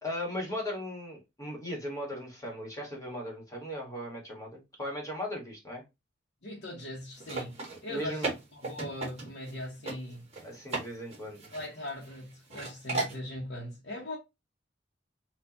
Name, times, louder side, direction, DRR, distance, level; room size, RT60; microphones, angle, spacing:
voice 1, 0.0-5.8 7.9-8.3 10.4-11.5, left 1 dB, 20° left, 1.5 m, -37 dB
voice 2, 6.4-10.3 11.5-14.2, left 1 dB, 65° left, 1.0 m, -40 dB
sound 1, 7.2-9.5 9.9-10.0 10.3-10.9 11.1-12.2 12.5-13.2, right 3 dB, 35° right, 1.5 m, -35 dB
4.4 x 2.5 x 2.8 m
head